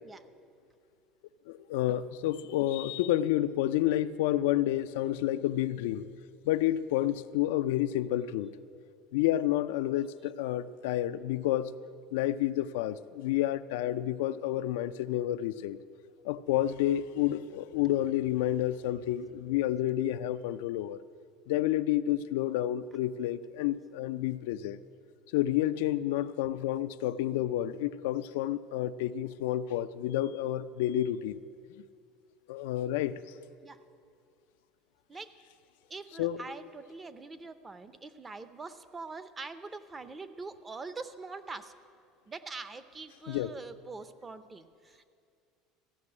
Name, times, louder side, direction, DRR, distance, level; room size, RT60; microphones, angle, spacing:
voice 1, 1.5-6.1 6.5-8.5 9.1-11.7 12.1-15.8 16.2-21.0 21.5-24.8 25.3-31.4 32.5-33.1 36.2-36.4 43.3-43.5, left 13 dB, 85° left, 12 dB, 0.4 m, -30 dB
voice 2, 35.9-41.7 42.3-45.1, right 3 dB, 20° right, 12 dB, 0.6 m, -44 dB
15.0 x 6.1 x 9.6 m, 2.3 s
supercardioid pair, 120°, 0 cm